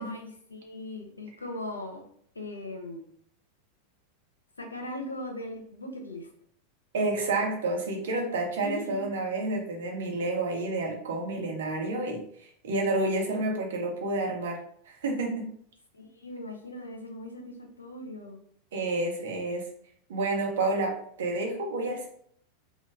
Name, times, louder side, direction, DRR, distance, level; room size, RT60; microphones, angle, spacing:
voice 1, 0.0-2.0 2.3-3.0 4.6-6.3 8.6-9.1 15.9-18.4, left 1 dB, 80° left, 2 dB, 0.6 m, -39 dB
voice 2, 6.9-12.2 12.6-14.6 14.9-15.5 18.7-19.7 20.1-22.1, right 2 dB, 65° right, 1 dB, 0.8 m, -29 dB
3.2 x 2.2 x 3.3 m, 0.63 s
figure-of-eight pair, 90°, 0 cm